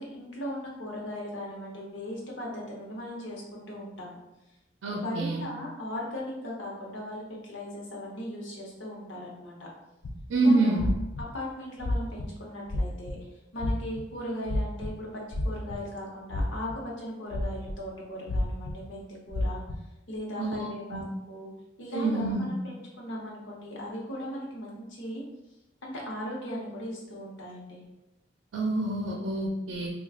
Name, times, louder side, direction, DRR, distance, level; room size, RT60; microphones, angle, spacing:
voice 1, 0.0-4.2 5.0-9.7 10.4-10.8 11.3-13.2 13.5-19.6 20.1-21.5 21.8-25.2 25.8-27.8, equal, 85° left, -3 dB, 0.9 m, -38 dB
voice 2, 4.8-5.4 10.3-10.8 20.4-21.0 21.9-22.6 28.5-29.9, right 2 dB, 90° right, 0 dB, 0.5 m, -27 dB
sound 1, 10.0-10.2 10.8-11.2 11.8-12.3 12.7-13.1 13.6-14.0 14.4-14.9 15.3-16.0 16.3-16.7 17.3-17.7 18.3-18.7 19.3-19.8, left 1 dB, 65° left, 0.4 m, -29 dB
4.7 x 2.3 x 2.4 m, 0.98 s
head